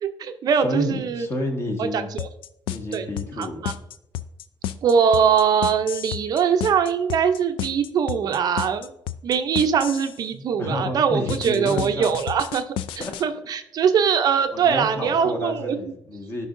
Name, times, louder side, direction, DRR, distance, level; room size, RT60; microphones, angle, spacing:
voice 1, 0.0-1.3 1.8-2.3 2.9-3.1 3.4-3.7 4.8-8.9 9.2-12.6 13.0-15.8, right 7 dB, 50° right, 8 dB, 0.5 m, -22 dB
voice 2, 0.6-2.1 2.7-3.8 10.3-12.2 13.0-13.1 14.5-16.5, left 1 dB, 30° left, 3 dB, 1.4 m, -30 dB
sound 1, 2.2-10.2 11.3-13.2, left 11 dB, 80° left, 0.4 m, -31 dB
12.5 x 5.5 x 2.6 m, 0.77 s
cardioid pair, 130°, 9 cm